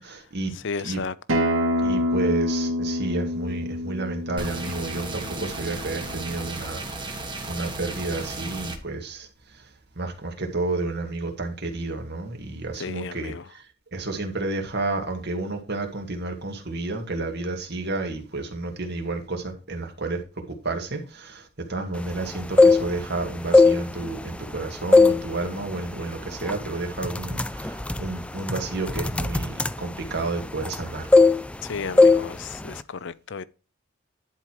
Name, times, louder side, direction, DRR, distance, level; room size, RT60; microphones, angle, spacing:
voice 1, 0.0-0.5 0.8-1.0 1.8-7.1 7.5-13.7 13.9-20.2 20.6-31.1, right 2 dB, 55° right, 2.1 m, -31 dB
voice 2, 0.5-1.4 12.8-13.4 31.6-33.4, left 5 dB, 60° left, 0.6 m, -34 dB
Acoustic guitar, 1.3-6.5, left 1 dB, 75° right, 2.1 m, -27 dB
sound 1, 4.4-8.8, right 2 dB, 25° right, 1.5 m, -34 dB
sound 2, 22.4-23.1 23.5-24.5 24.9-25.3 25.6-25.9 26.5-26.7 27.0-30.8 31.1-31.7 32.0-32.3 32.5-32.8, left 3 dB, 5° left, 0.4 m, -18 dB
11.0 x 4.6 x 4.7 m
head